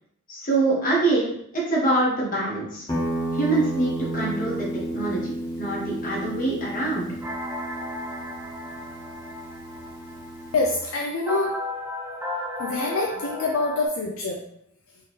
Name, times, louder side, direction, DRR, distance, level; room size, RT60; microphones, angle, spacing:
voice 1, 0.3-2.9 3.3-4.7 4.9-5.3 5.6-7.1, right 2 dB, 40° left, -4 dB, 1.2 m, -24 dB
Guitar, 2.9-10.7, right 1 dB, 20° left, 0.9 m, -32 dB
sound 1, 7.2-13.9, left 2 dB, 10° right, 0.4 m, -35 dB
voice 2, 10.5-11.5 12.6-14.4, left 3 dB, 65° left, -1 dB, 0.4 m, -25 dB
3.7 x 2.8 x 3.1 m, 0.72 s
head